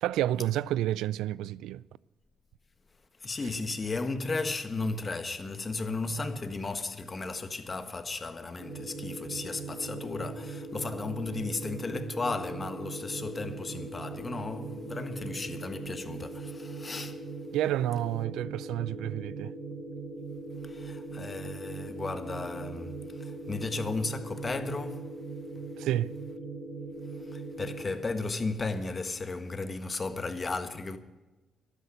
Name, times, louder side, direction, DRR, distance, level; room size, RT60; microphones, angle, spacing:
voice 1, 0.0-1.8 17.5-19.5 25.8-26.2, right 13 dB, 90° right, 0.4 m, -30 dB
voice 2, 3.2-17.2 20.6-25.2 27.2-31.0, left 3 dB, 30° left, 1.4 m, -35 dB
sound 1, 8.6-27.9, right 3 dB, 55° right, 5.4 m, -40 dB
12.5 x 10.0 x 9.2 m
cardioid pair, 90°, 0 cm